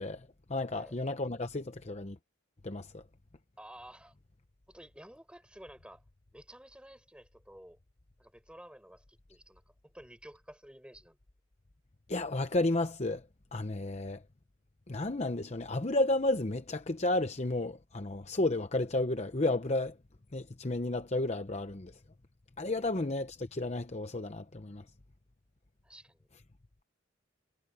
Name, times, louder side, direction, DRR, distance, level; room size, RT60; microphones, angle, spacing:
voice 1, 0.0-2.2 2.6-3.0 12.1-13.2 13.5-14.2 14.9-20.0 20.3-22.0 22.6-24.8, left 2 dB, 35° left, 0.8 m, -32 dB
voice 2, 3.6-4.1 4.7-6.0 6.3-7.8 8.2-11.2 22.7-23.0 25.8-26.3, right 1 dB, 5° right, 7.4 m, -52 dB
head